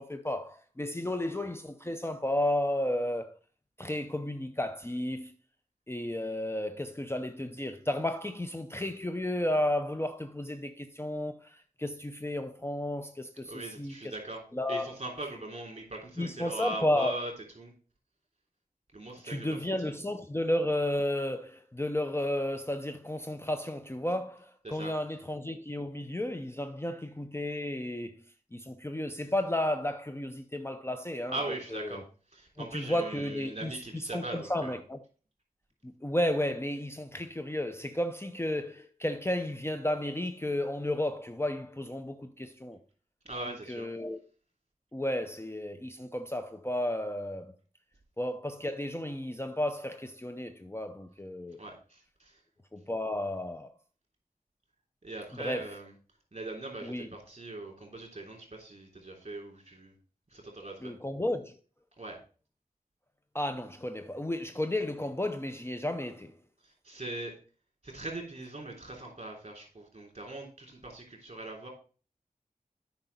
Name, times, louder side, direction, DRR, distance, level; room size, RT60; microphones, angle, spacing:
voice 1, 0.0-3.3 3.8-5.3 5.9-14.1 14.5-14.9 16.2-17.2 19.2-28.1 28.5-31.4 31.7-32.0 32.6-35.0 35.8-42.8 43.7-44.2 44.9-47.5 48.2-51.6 52.7-53.7 55.4-55.7 56.8-57.1 60.8-61.6 63.3-66.3, left 1 dB, 15° left, 0.7 m, -33 dB
voice 2, 13.4-14.4 14.7-17.7 18.9-19.9 24.6-24.9 31.3-32.0 32.3-34.8 43.2-43.9 51.6-52.4 55.0-55.9 56.3-59.9 60.3-60.9 62.0-62.2 66.6-67.3 67.8-71.7, right 2 dB, 45° right, 3.3 m, -40 dB
8.9 x 5.4 x 4.1 m
wide cardioid pair, 50°, 15 cm